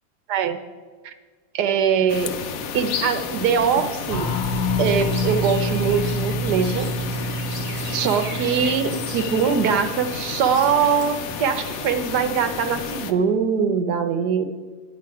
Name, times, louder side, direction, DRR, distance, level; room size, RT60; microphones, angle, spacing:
voice 1, 0.3-0.6 1.0-1.1 1.5-2.3 2.7-4.3 4.8-6.9 7.9-14.4, right 7 dB, 90° right, 8 dB, 1.4 m, -22 dB
sound 1, 2.1-13.1, left 6 dB, 65° left, 1.0 m, -32 dB
sound 2, 4.1-10.4, equal, 35° left, 1.2 m, -28 dB
Chirp tweet, 4.9-11.7, right 1 dB, 55° right, 3.4 m, -39 dB
10.0 x 10.0 x 4.8 m, 1.5 s
omnidirectional pair, 1.7 m